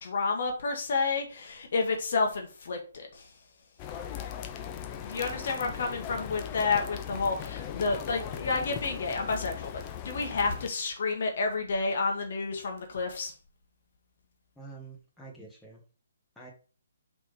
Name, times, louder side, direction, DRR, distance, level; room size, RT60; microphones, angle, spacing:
voice 1, 0.0-3.3 5.0-13.3, left 4 dB, 55° left, 3 dB, 1.3 m, -30 dB
sound 1, 3.8-10.7, left 9 dB, 25° left, 0.6 m, -39 dB
voice 2, 14.5-15.8 16.3-16.5, right 3 dB, 5° left, -4 dB, 1.7 m, -47 dB
5.9 x 3.5 x 4.9 m, 0.37 s
figure-of-eight pair, 135°, 0 cm